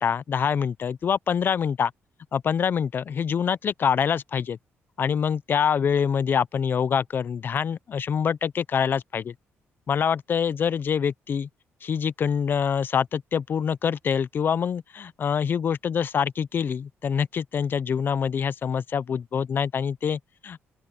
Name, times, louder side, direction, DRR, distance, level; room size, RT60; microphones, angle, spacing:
voice 1, 0.0-1.9 2.3-4.6 5.0-9.3 9.9-11.5 11.8-20.7, left 7 dB, 45° left, 0.6 m, -25 dB
open air
cardioid pair, 115°, 5 cm